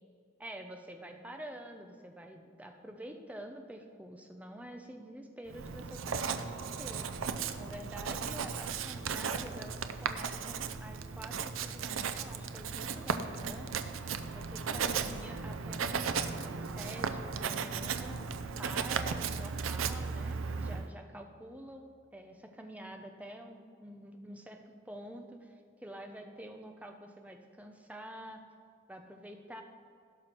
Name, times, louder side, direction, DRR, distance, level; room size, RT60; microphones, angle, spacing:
voice 1, 0.4-7.3 7.6-13.9 14.3-18.2 18.6-28.4 28.9-29.6, right 1 dB, 5° right, 4 dB, 0.7 m, -47 dB
Writing, 5.5-20.9, right 5 dB, 85° right, 0.6 m, -36 dB
16.5 x 6.0 x 4.5 m, 2.2 s
head